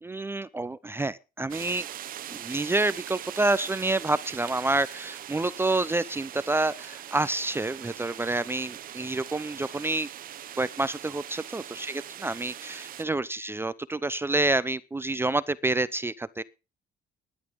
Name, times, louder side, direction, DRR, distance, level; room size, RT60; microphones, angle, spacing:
voice 1, 0.0-1.9 2.3-10.1 10.6-16.4, right 2 dB, 15° right, 0.6 m, -28 dB
sound 1, 1.5-13.0, right 11 dB, 55° right, 1.2 m, -41 dB
12.5 x 11.0 x 5.1 m
cardioid pair, 110°, 17 cm